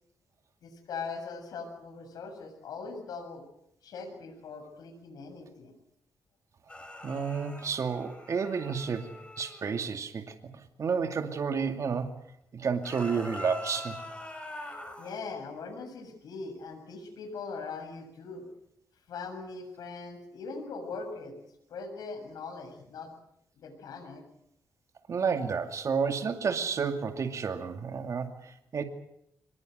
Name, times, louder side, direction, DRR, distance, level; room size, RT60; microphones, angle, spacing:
voice 1, 0.6-3.4 3.8-5.8 15.0-18.5 19.1-21.4 21.7-23.1 23.6-24.2, left 4 dB, 85° left, 7 dB, 6.9 m, -41 dB
sound 1, 6.7-9.9 12.7-15.2, left 1 dB, 15° left, 5.7 m, -43 dB
voice 2, 7.0-10.3 10.8-12.1 12.5-14.0 25.1-28.8, right 5 dB, 55° right, 5 dB, 2.4 m, -31 dB
24.5 x 21.0 x 7.9 m, 0.78 s
cardioid pair, 100°, 6 cm